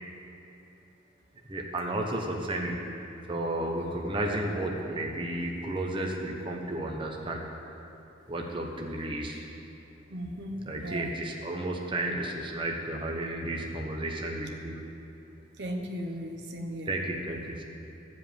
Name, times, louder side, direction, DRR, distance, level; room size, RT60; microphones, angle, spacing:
voice 1, 1.5-2.8 3.3-7.4 8.3-9.5 10.7-14.8 16.9-17.6, right 1 dB, 25° right, 0 dB, 1.0 m, -32 dB
voice 2, 10.1-11.2 15.5-16.9, equal, 60° right, 2 dB, 1.0 m, -36 dB
13.5 x 5.1 x 9.1 m, 2.9 s
head